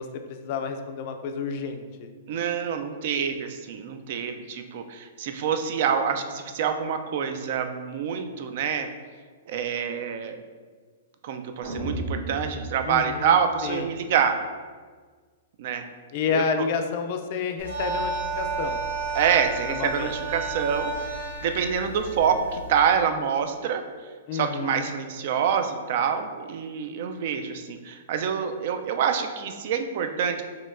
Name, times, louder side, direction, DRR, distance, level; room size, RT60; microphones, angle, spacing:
voice 1, 0.0-2.1 12.9-13.3 13.6-13.9 16.1-18.8 19.7-20.1 24.3-24.9, left 6 dB, 45° left, 6 dB, 0.4 m, -30 dB
voice 2, 2.3-8.9 9.5-10.4 11.2-14.4 15.6-15.9 16.3-16.7 19.1-23.8 24.3-30.4, right 7 dB, 50° right, 7 dB, 0.3 m, -26 dB
sound 1, 11.6-13.9, right 1 dB, 70° right, 1.2 m, -35 dB
sound 2, 17.6-22.8, right 3 dB, 85° right, 0.7 m, -32 dB
4.4 x 3.1 x 2.5 m, 1.5 s
hypercardioid pair, 150°, 0 cm